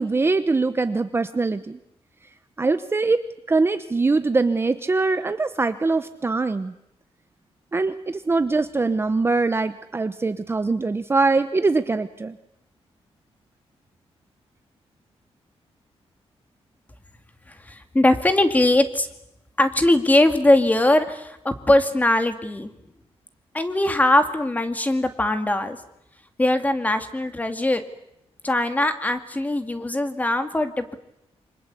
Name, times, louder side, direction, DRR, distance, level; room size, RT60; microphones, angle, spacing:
voice 1, 0.0-1.8 2.6-3.2 3.5-6.7 7.7-12.4, right 3 dB, 25° right, 10 dB, 1.0 m, -22 dB
voice 2, 17.7-19.1 19.6-22.7 23.5-25.8 26.4-27.8 28.4-31.0, left 1 dB, 15° left, 8 dB, 2.3 m, -21 dB
27.5 x 25.5 x 8.4 m, 0.82 s
wide cardioid pair, 140°, 11 cm